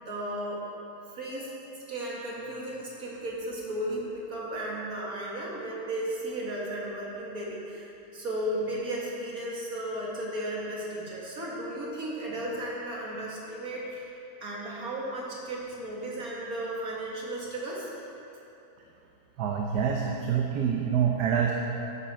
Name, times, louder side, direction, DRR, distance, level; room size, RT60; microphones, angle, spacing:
voice 1, 0.1-0.6 1.1-1.5 1.9-14.1 14.4-17.9, right 1 dB, 55° right, -4 dB, 2.5 m, -35 dB
voice 2, 19.4-21.5, right 8 dB, 70° right, 1 dB, 1.3 m, -26 dB
13.0 x 10.0 x 4.5 m, 2.9 s
omnidirectional pair, 1.8 m